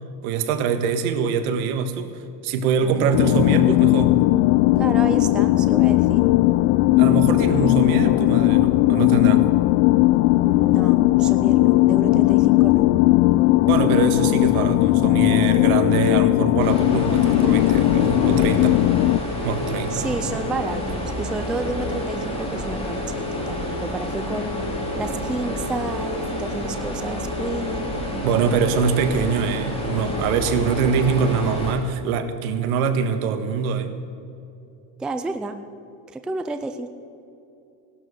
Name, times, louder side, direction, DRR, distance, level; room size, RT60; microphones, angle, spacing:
voice 1, 0.2-4.2 7.0-9.4 13.7-18.8 19.4-20.3 28.2-33.9, right 6 dB, 80° right, 8 dB, 1.7 m, -24 dB
sound 1, 3.1-19.2, left 18 dB, 60° left, 0.5 m, -17 dB
voice 2, 4.8-6.2 10.4-12.9 19.9-23.0 23.3-24.5 24.9-28.0 35.0-35.6 36.1-36.9, right 3 dB, ahead, 8 dB, 0.3 m, -31 dB
sound 2, 16.6-31.7, left 1 dB, 15° left, 3.4 m, -29 dB
17.0 x 12.5 x 6.7 m, 2.7 s
supercardioid pair, 140°, 43 cm